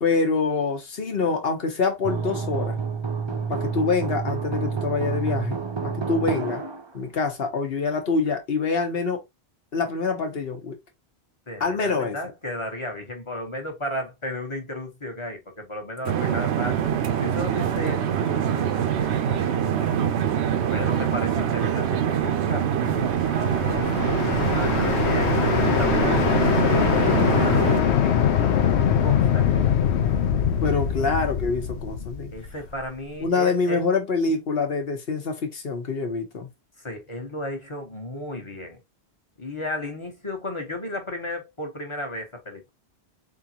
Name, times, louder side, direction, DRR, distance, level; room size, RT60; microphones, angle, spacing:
voice 1, 0.0-2.8 3.5-5.6 5.8-6.6 6.9-9.2 9.7-10.8 11.6-12.2 30.6-32.3 33.2-36.5, left 4 dB, 65° left, 1.2 m, -25 dB
sound 1, 2.0-6.9, right 5 dB, 35° right, 0.5 m, -28 dB
voice 2, 11.5-16.8 17.2-20.0 20.7-23.8 24.6-28.7 29.0-29.6 32.3-33.8 36.8-38.8 39.4-42.7, left 1 dB, 30° left, 1.1 m, -34 dB
sound 2, 16.1-27.8, right 9 dB, 85° right, 0.9 m, -24 dB
sound 3, 22.9-32.9, left 8 dB, 85° left, 1.0 m, -23 dB
3.9 x 3.7 x 2.8 m
omnidirectional pair, 1.1 m